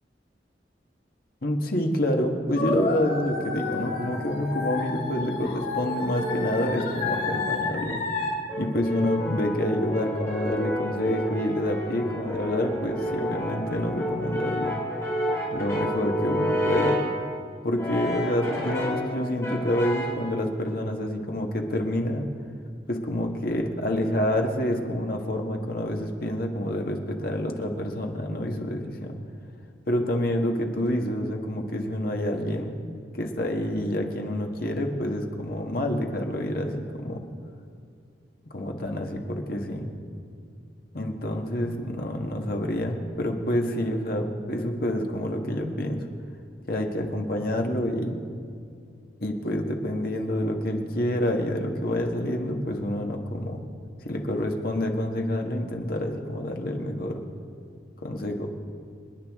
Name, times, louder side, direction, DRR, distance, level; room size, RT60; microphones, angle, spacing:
voice 1, 1.4-8.0 8.6-14.8 15.5-17.0 17.6-22.3 22.9-29.2 29.9-32.7 33.2-37.2 38.5-39.9 40.9-46.1 46.7-48.2 49.2-53.6 54.0-57.2 58.0-58.6, left 1 dB, 55° left, 3 dB, 1.5 m, -28 dB
sound 1, 2.5-8.3, left 4 dB, 85° left, 3.7 m, -31 dB
Brass instrument, 3.1-5.0 5.8-7.8 8.5-17.2 17.7-19.1 19.4-20.3, equal, 15° left, 3.2 m, -31 dB
28.0 x 9.8 x 3.6 m, 2.4 s
head